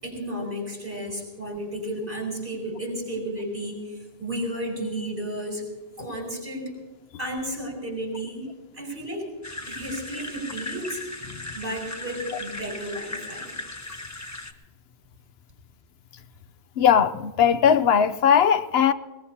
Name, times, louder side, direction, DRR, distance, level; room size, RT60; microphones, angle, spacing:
voice 1, 0.0-5.7 6.0-6.7 7.2-9.3 9.7-11.0 11.5-13.5, right 1 dB, 60° right, 5.4 m, -33 dB
sound 1, 9.4-14.5, left 2 dB, 15° left, 0.9 m, -37 dB
voice 2, 16.8-18.9, left 8 dB, 75° left, 1.0 m, -19 dB
21.0 x 20.5 x 2.8 m
omnidirectional pair, 1.1 m